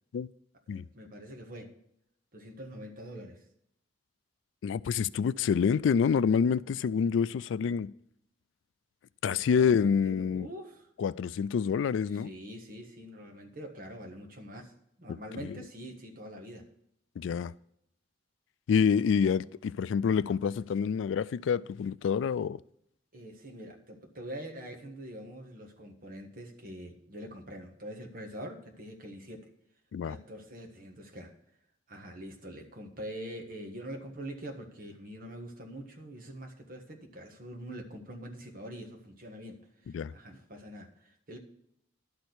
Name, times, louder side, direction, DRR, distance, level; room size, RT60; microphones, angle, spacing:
voice 1, 0.7-1.7 2.3-3.4 9.2-10.9 12.1-14.7 15.0-16.6 17.2-17.5 23.1-29.5 30.0-31.3 31.9-41.4, equal, 50° right, 1.5 m, -44 dB
voice 2, 4.6-7.9 9.2-10.5 11.0-12.3 15.1-15.6 17.2-17.5 18.7-22.6 29.9-30.2 39.9-40.1, left 6 dB, 90° left, 0.3 m, -27 dB
11.5 x 4.4 x 8.1 m
head